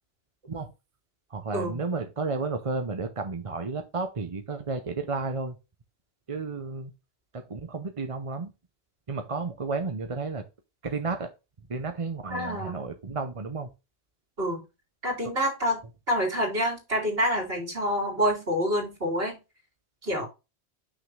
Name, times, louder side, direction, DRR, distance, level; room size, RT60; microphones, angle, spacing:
voice 1, 1.3-5.6 6.3-6.9 7.3-8.5 9.1-10.5 10.8-11.3 11.7-13.7 15.2-15.3, right 4 dB, 35° right, 6 dB, 0.8 m, -32 dB
voice 2, 12.3-12.9 14.4-14.6 15.0-15.8 16.1-19.4 20.0-20.3, equal, 60° right, -1 dB, 3.2 m, -27 dB
6.2 x 5.8 x 3.3 m, 0.26 s
omnidirectional pair, 1.1 m